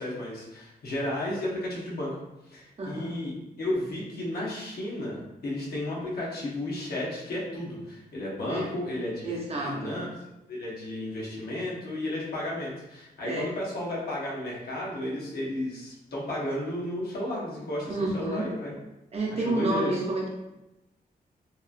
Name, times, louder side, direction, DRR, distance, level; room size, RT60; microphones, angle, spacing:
voice 1, 0.0-2.1 2.5-10.1 10.5-18.7 19.3-20.0, left 1 dB, 75° left, -4 dB, 0.8 m, -33 dB
voice 2, 2.8-3.1 8.5-8.7 9.2-10.0 13.2-13.5 17.9-18.4 19.1-20.3, right 2 dB, 40° right, -2 dB, 0.6 m, -29 dB
2.9 x 2.3 x 2.4 m, 0.96 s
wide cardioid pair, 155°, 16 cm